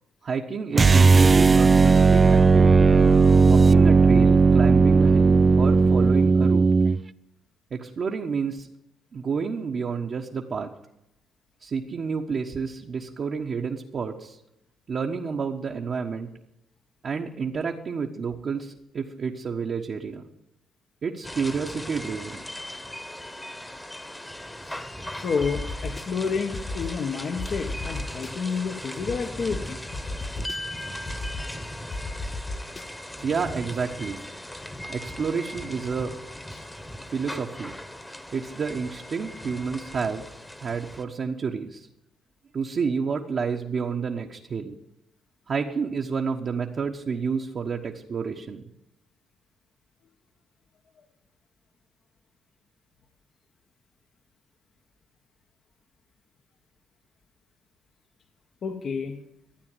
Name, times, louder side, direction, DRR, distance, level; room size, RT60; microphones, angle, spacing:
voice 1, 0.2-2.9 3.4-6.7 7.7-8.7 9.1-10.7 11.6-14.4 14.9-16.3 17.0-20.2 21.0-22.4 33.2-34.2 34.9-36.1 37.1-37.8 38.3-40.2 40.6-41.9 42.5-44.7 45.5-48.6, right 5 dB, 50° right, 0 dB, 1.3 m, -30 dB
sound 1, 0.7-7.0, right 4 dB, 30° right, 0.5 m, -16 dB
sound 2, 21.2-41.0, left 1 dB, 10° left, 1.4 m, -38 dB
voice 2, 24.6-29.8 36.5-36.6 58.6-59.2, left 5 dB, 55° left, 4 dB, 1.4 m, -30 dB
sound 3, 25.4-26.0 26.5-26.9 27.4-28.3 29.1-29.2 29.5-29.6 29.9-30.6 31.1-31.4 31.9-32.8, left 2 dB, 35° left, 0.9 m, -33 dB
13.0 x 9.3 x 9.1 m, 0.84 s
cardioid pair, 90°, 0 cm